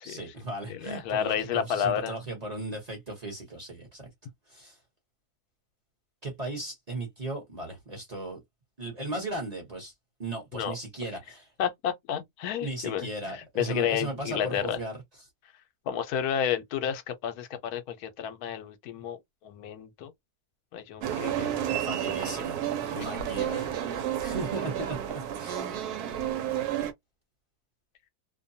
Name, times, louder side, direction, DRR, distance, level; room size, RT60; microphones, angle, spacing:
voice 1, 0.0-4.1 4.5-4.8 6.2-8.4 8.8-9.9 10.2-11.5 12.6-15.0 21.7-22.6 22.9-25.7, right 2 dB, 30° right, 0.9 m, -37 dB
voice 2, 0.7-2.1 10.5-10.7 11.6-14.8 15.9-20.1 20.7-21.7 22.9-23.1, left 9 dB, 80° left, 1.1 m, -31 dB
sound 1, 21.0-26.9, right 10 dB, 85° right, 1.1 m, -31 dB
2.6 x 2.2 x 2.6 m
omnidirectional pair, 1.6 m